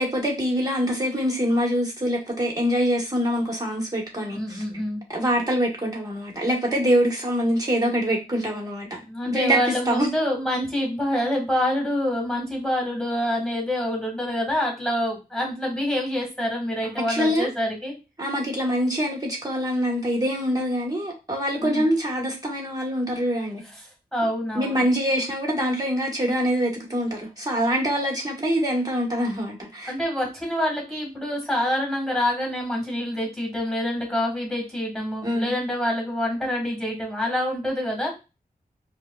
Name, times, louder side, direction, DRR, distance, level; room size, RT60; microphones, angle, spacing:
voice 1, 0.0-4.6 5.1-9.0 9.3-9.6 9.9-10.1 17.1-17.5 18.2-23.6 24.5-29.9 35.2-35.5, equal, 25° right, 1.3 m, -24 dB
voice 2, 4.3-5.0 9.1-17.9 21.6-21.9 23.7-24.8 29.9-38.1, left 1 dB, ahead, 1.9 m, -26 dB
4.8 x 2.2 x 2.3 m
wide cardioid pair, 70°, 16 cm